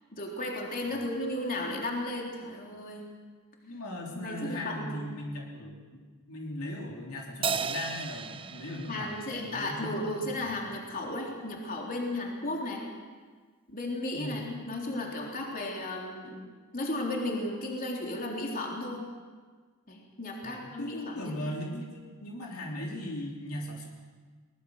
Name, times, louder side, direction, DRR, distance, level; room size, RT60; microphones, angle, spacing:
voice 1, 0.1-3.0 4.1-5.0 8.8-12.9 13.7-16.4 16.7-19.0 19.9-21.4, left 1 dB, 40° left, -1 dB, 3.6 m, -34 dB
voice 2, 3.6-6.0 6.3-10.1 14.1-14.4 20.4-23.9, left 1 dB, 70° left, -1 dB, 3.3 m, -38 dB
Crash cymbal, 7.4-10.1, right 5 dB, 25° right, 0.7 m, -35 dB
23.0 x 20.0 x 6.5 m, 1.5 s
head